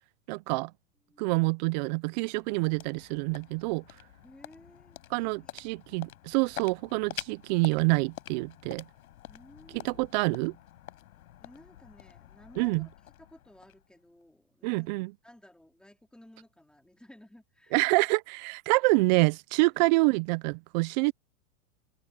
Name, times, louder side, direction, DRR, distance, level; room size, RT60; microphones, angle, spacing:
voice 1, 0.3-0.7 1.2-3.8 5.1-8.9 9.7-10.6 12.6-12.9 14.6-15.1 17.7-21.1, right 27 dB, 35° right, 0.4 m, -27 dB
sound 1, 1.8-14.2, left 14 dB, 70° left, 6.5 m, -47 dB
voice 2, 4.2-5.5 9.3-10.0 11.4-12.9 13.2-14.9 15.2-17.7 18.8-18.9 19.7-19.8, left 1 dB, ahead, 3.1 m, -55 dB
open air
hypercardioid pair, 125°, 44 cm